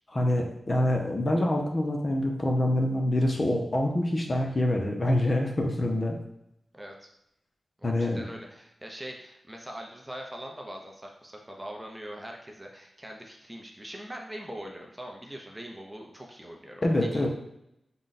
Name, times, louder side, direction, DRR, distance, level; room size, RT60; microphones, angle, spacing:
voice 1, 0.1-6.2 7.8-8.2 16.8-17.3, left 1 dB, 35° left, 1 dB, 0.7 m, -26 dB
voice 2, 6.7-7.1 7.8-17.3, equal, 15° right, 1 dB, 0.7 m, -42 dB
3.8 x 2.3 x 3.9 m, 0.81 s
cardioid pair, 65°, 0 cm